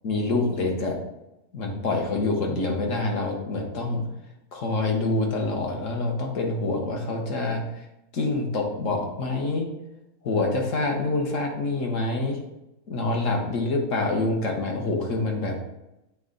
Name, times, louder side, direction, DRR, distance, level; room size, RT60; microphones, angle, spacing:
voice 1, 0.0-1.0 1.5-4.1 4.5-7.8 8.1-9.7 10.2-12.4 12.9-15.6, left 2 dB, 55° left, 1 dB, 1.4 m, -26 dB
7.7 x 3.6 x 3.9 m, 0.91 s
omnidirectional pair, 1.7 m